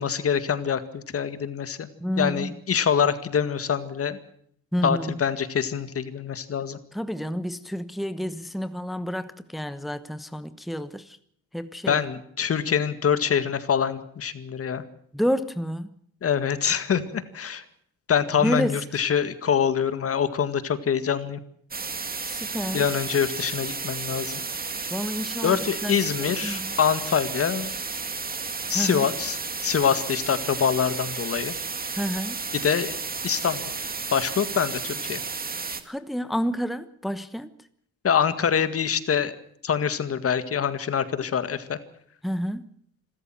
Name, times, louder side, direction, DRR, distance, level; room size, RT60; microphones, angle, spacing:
voice 1, 0.0-1.9 2.2-4.2 4.8-6.8 11.8-14.8 16.2-17.6 18.1-21.4 22.7-24.4 25.4-27.7 28.7-31.5 32.5-33.0 33.2-33.6 34.1-35.2 38.0-39.4 39.6-41.8, left 7 dB, 50° left, 2.0 m, -25 dB
voice 2, 2.0-2.5 4.7-5.1 6.9-11.2 11.5-12.0 15.1-15.9 18.4-18.8 22.3-22.9 24.9-26.8 28.7-29.1 31.9-32.4 35.8-37.5 42.2-42.7, equal, ahead, 1.1 m, -29 dB
sound 1, 21.7-35.8, right 4 dB, 30° right, 2.3 m, -32 dB
26.5 x 13.5 x 7.6 m
cardioid pair, 90°, 30 cm